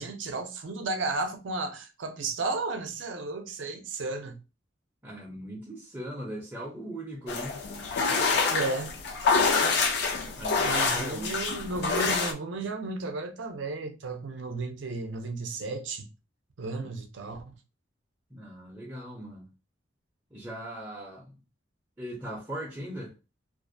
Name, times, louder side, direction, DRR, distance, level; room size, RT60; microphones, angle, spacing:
voice 1, 0.0-4.4 8.5-9.0 9.6-9.8 10.7-16.1 16.6-17.4, right 3 dB, 70° right, 0.5 m, -33 dB
voice 2, 5.0-7.6 10.4-11.5 16.8-16.9 18.3-19.5 20.3-21.4 22.0-23.1, right 1 dB, 10° right, 0.5 m, -39 dB
sound 1, 7.3-12.3, left 4 dB, 55° left, 0.4 m, -26 dB
2.4 x 2.0 x 2.5 m
head